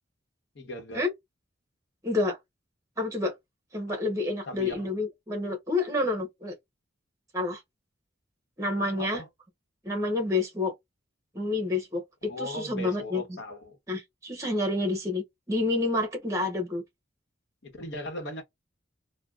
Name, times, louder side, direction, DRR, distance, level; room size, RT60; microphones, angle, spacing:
voice 1, 0.5-1.0 4.5-5.0 9.0-9.3 12.2-13.8 17.6-18.4, left 1 dB, 65° left, 1.1 m, -38 dB
voice 2, 2.0-2.4 3.0-3.3 3.7-6.5 7.3-7.6 8.6-9.2 9.8-10.7 11.3-12.0 12.4-13.2 13.9-16.8, left 2 dB, 15° right, 0.8 m, -28 dB
3.4 x 2.2 x 2.4 m
head